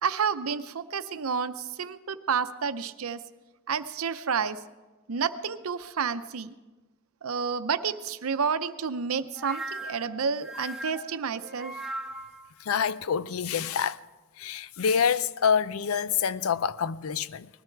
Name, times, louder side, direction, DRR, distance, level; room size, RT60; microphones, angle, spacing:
voice 1, 0.0-3.2 3.7-4.6 5.1-6.5 7.2-11.7, right 6 dB, 85° right, 0.7 m, -30 dB
sound 1, 9.4-12.5, right 1 dB, 5° right, 0.6 m, -38 dB
voice 2, 12.6-14.0 14.4-17.5, left 7 dB, 80° left, 0.5 m, -27 dB
19.5 x 13.5 x 4.6 m
head